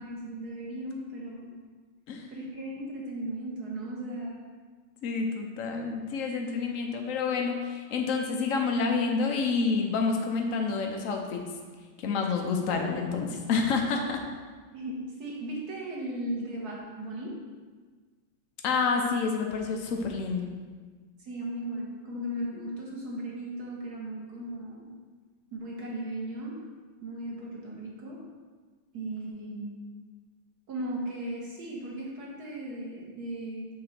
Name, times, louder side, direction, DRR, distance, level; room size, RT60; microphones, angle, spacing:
voice 1, 0.0-1.5 2.3-4.4 14.7-17.3 21.2-24.9 25.5-26.6 27.0-28.2 28.9-29.8 30.7-33.7, right 1 dB, 50° right, -3 dB, 1.8 m, -36 dB
voice 2, 5.0-11.4 12.0-14.2 18.6-20.5, left 4 dB, 65° left, 2 dB, 0.8 m, -28 dB
6.9 x 3.9 x 5.8 m, 1.5 s
omnidirectional pair, 2.3 m